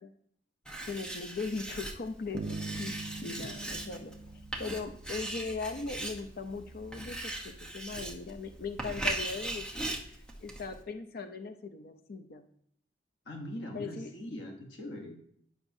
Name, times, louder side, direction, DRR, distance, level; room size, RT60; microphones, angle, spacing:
Writing, 0.7-10.8, right 1 dB, 5° left, 0.9 m, -39 dB
voice 1, 0.9-2.9 3.2-4.1 4.6-9.9 10.4-12.4 13.7-14.1, left 4 dB, 55° left, 8 dB, 0.6 m, -39 dB
sound 1, 2.3-5.4, right 3 dB, 60° right, 0.4 m, -42 dB
voice 2, 13.2-15.2, left 1 dB, 80° left, 1 dB, 1.1 m, -41 dB
9.9 x 5.9 x 2.7 m, 0.65 s
head